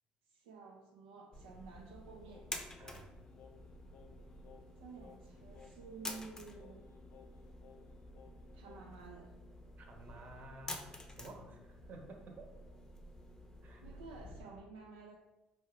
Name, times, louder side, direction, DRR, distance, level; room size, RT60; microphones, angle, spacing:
voice 1, 0.3-2.5 4.8-6.9 8.5-9.4 13.8-15.2, right 4 dB, 85° right, 0 dB, 0.4 m, -52 dB
sound 1, 1.3-14.4, left 1 dB, 15° left, 0.6 m, -50 dB
Singing, 2.3-9.1, left 6 dB, 65° left, 0.4 m, -61 dB
voice 2, 2.8-3.1 9.8-12.5 13.6-14.0, right 2 dB, 55° right, 2 dB, 0.9 m, -53 dB
4.4 x 2.4 x 3.2 m, 1.1 s
hypercardioid pair, 65°, 3 cm